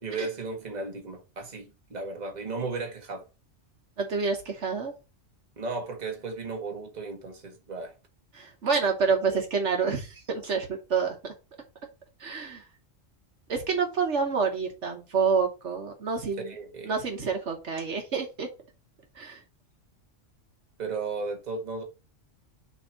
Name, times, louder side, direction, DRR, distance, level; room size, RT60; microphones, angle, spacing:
voice 1, 0.0-3.2 5.6-7.9 9.1-9.4 16.4-16.9 20.8-21.8, right 3 dB, 35° right, 1.4 m, -35 dB
voice 2, 4.0-4.9 8.3-11.3 12.2-12.6 13.5-16.5 16.9-18.5 19.2-19.4, right 5 dB, 65° right, 1.4 m, -28 dB
6.9 x 2.7 x 5.6 m
omnidirectional pair, 1.3 m